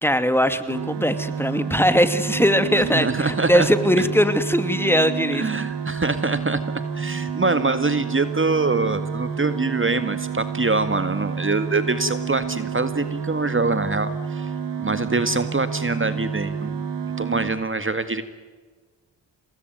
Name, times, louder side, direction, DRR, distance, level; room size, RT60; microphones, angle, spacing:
voice 1, 0.0-5.4, equal, 5° left, 10 dB, 2.4 m, -20 dB
sound 1, 0.7-17.5, right 7 dB, 75° right, 3.0 m, -29 dB
voice 2, 2.9-3.7 4.0-4.1 5.3-6.6 7.0-14.5 14.8-16.8 17.2-18.2, right 3 dB, 30° right, 11 dB, 1.9 m, -24 dB
27.5 x 19.5 x 9.4 m, 1.4 s
cardioid pair, 55°, 42 cm